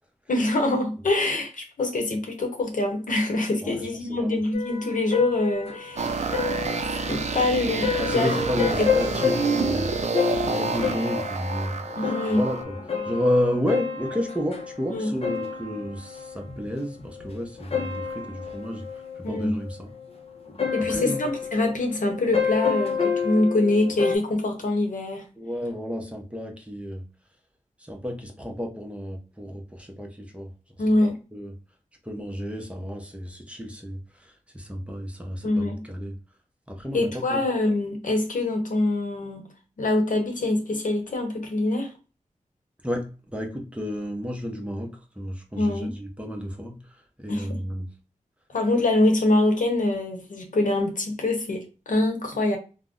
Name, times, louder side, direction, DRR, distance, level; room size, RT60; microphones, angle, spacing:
voice 1, 0.3-6.3 7.1-8.3 9.1-9.2 12.0-12.4 14.9-15.1 19.2-19.5 20.7-25.2 30.8-31.1 35.4-35.8 36.9-39.5 39.8-41.9 45.6-45.9 47.3-47.5 48.5-52.6, left 2 dB, 75° left, 0.8 m, -24 dB
voice 2, 3.6-4.4 7.9-9.9 10.4-12.8 13.0-19.9 20.8-21.2 25.4-27.1 27.8-30.5 31.0-31.6 32.0-36.2 36.7-37.4 42.8-47.9, equal, 10° right, 0.7 m, -31 dB
sound 1, 4.5-24.2, left 6 dB, 50° left, 0.6 m, -30 dB
sound 2, 6.0-12.6, right 4 dB, 55° right, 0.4 m, -28 dB
2.5 x 2.1 x 3.6 m
wide cardioid pair, 80°, 14 cm